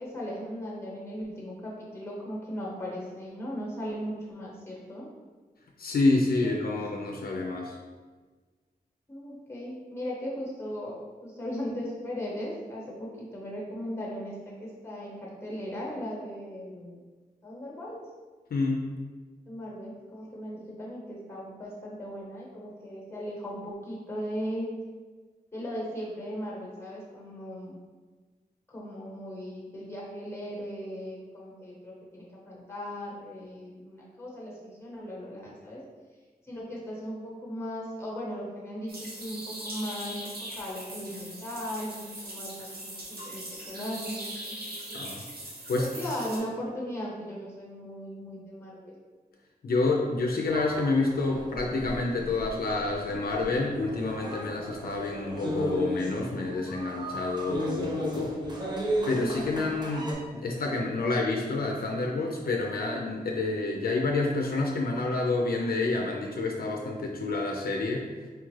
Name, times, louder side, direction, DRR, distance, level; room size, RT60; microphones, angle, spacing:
voice 1, 0.0-5.1 6.4-6.8 9.1-17.0 17.4-18.0 19.5-24.7 25.5-27.7 28.7-35.8 36.4-45.0 45.8-48.9 59.2-59.7, equal, 15° left, -4 dB, 1.0 m, -38 dB
voice 2, 5.8-7.8 18.5-18.9 44.9-45.2 45.7-45.9 49.6-58.4 59.1-68.1, left 3 dB, 70° left, 0 dB, 0.4 m, -28 dB
sound 1, 38.9-46.4, right 1 dB, 75° right, 0.9 m, -40 dB
sound 2, 50.5-60.1, equal, 30° right, 0.7 m, -34 dB
4.4 x 2.3 x 3.1 m, 1.4 s
wide cardioid pair, 135°, 16 cm